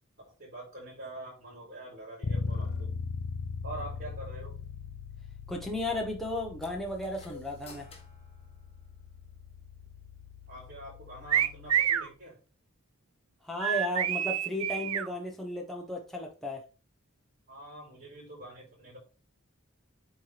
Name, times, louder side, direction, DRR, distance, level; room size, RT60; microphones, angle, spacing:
voice 1, 0.3-2.9 3.6-4.6 10.5-12.4 17.5-19.0, right 1 dB, 45° right, 4.2 m, -45 dB
Bass guitar, 2.2-12.1, left 4 dB, 65° left, 0.5 m, -40 dB
voice 2, 5.5-7.9 13.4-16.7, left 1 dB, ahead, 0.9 m, -34 dB
sound 1, 6.6-9.3, left 4 dB, 30° left, 1.3 m, -53 dB
sound 2, 11.3-12.1 13.6-15.1, right 10 dB, 90° right, 0.5 m, -27 dB
7.8 x 4.4 x 3.3 m
head